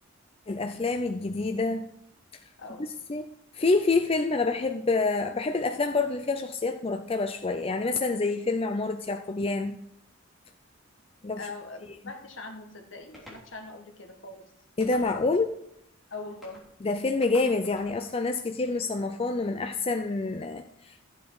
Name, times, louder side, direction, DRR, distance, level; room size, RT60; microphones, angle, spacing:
voice 1, 0.5-1.9 3.1-3.3 3.5-9.8 11.2-11.4 14.8-15.5 16.8-21.1, left 3 dB, 30° left, 6 dB, 0.5 m, -27 dB
voice 2, 2.6-2.9 11.4-14.5 16.1-16.7, left 3 dB, 65° left, 4 dB, 1.6 m, -42 dB
sound 1, 13.1-13.5 14.8-15.4 16.4-16.7 17.2-17.9, equal, ahead, 3.2 m, -49 dB
13.5 x 8.1 x 4.8 m, 0.75 s
head